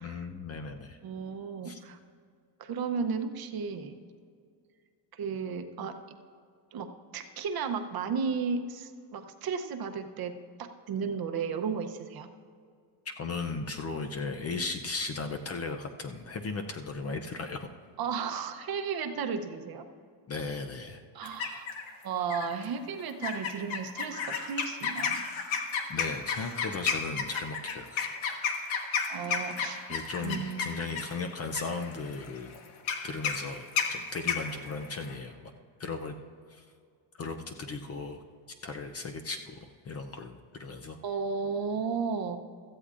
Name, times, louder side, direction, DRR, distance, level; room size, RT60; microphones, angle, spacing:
voice 1, 0.0-1.0 1.6-1.8 13.1-17.7 20.3-21.0 25.9-28.2 29.9-32.5 33.0-35.5 35.8-36.2 36.5-36.7 37.2-38.2 38.6-39.6 39.9-41.0, left 4 dB, 30° left, 5 dB, 0.5 m, -36 dB
voice 2, 1.0-2.0 2.6-4.0 5.1-6.0 6.7-10.3 10.6-12.3 18.0-19.8 21.1-21.7 22.0-25.2 29.1-29.8 30.2-30.7 41.0-42.4, right 5 dB, 45° right, 6 dB, 0.8 m, -34 dB
sound 1, 21.2-21.9 22.3-22.6 23.2-35.2, left 6 dB, 70° left, 1.4 m, -32 dB
16.5 x 14.0 x 2.5 m, 2.2 s
cardioid pair, 160°, 50 cm